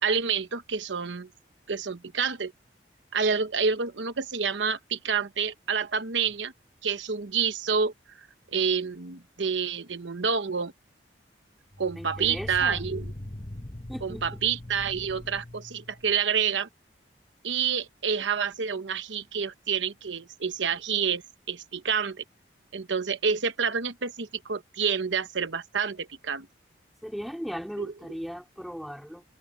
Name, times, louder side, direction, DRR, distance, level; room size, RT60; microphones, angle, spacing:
voice 1, 0.0-1.3 1.7-2.5 3.1-6.5 6.8-8.3 8.5-10.7 11.8-13.0 14.0-16.7 17.4-21.2 21.5-22.2 22.7-26.5 27.8-27.9, right 6 dB, 85° right, 1.0 m, -28 dB
sound 1, 6.3-6.4 11.7-16.2, left 1 dB, 25° left, 1.1 m, -40 dB
voice 2, 11.9-12.8 13.9-14.4 27.0-29.2, equal, ahead, 3.1 m, -37 dB
head